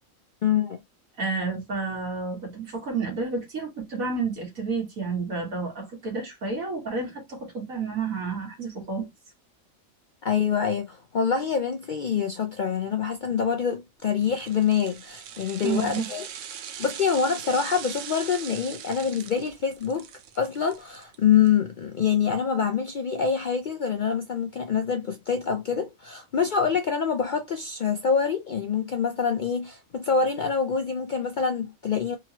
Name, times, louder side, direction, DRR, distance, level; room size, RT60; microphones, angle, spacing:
voice 1, 0.4-0.8 10.2-16.2 16.8-20.1 20.4-32.2, left 7 dB, 70° left, 0.4 m, -25 dB
voice 2, 1.2-9.1 15.6-16.1, right 4 dB, 90° right, 1.9 m, -30 dB
sound 1, 14.2-21.5 21.8-21.9, right 9 dB, 70° right, 0.9 m, -40 dB
3.8 x 2.9 x 2.8 m
omnidirectional pair, 1.4 m